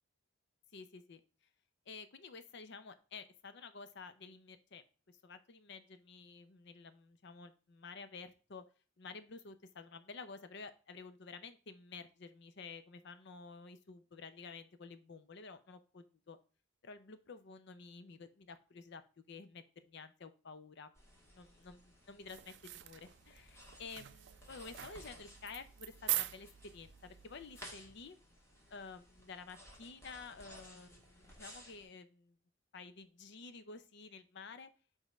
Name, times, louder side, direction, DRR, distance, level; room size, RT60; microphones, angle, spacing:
voice 1, 0.7-1.2 1.9-8.6 9.0-16.4 16.8-20.9 21.3-28.2 28.7-32.4 32.7-34.7, left 4 dB, 60° left, 11 dB, 0.6 m, -51 dB
sound 1, 21.0-31.9, equal, 15° left, 1.4 m, -58 dB
sound 2, 22.3-27.9, right 15 dB, 60° right, 0.4 m, -43 dB
5.1 x 3.6 x 5.3 m, 0.36 s
head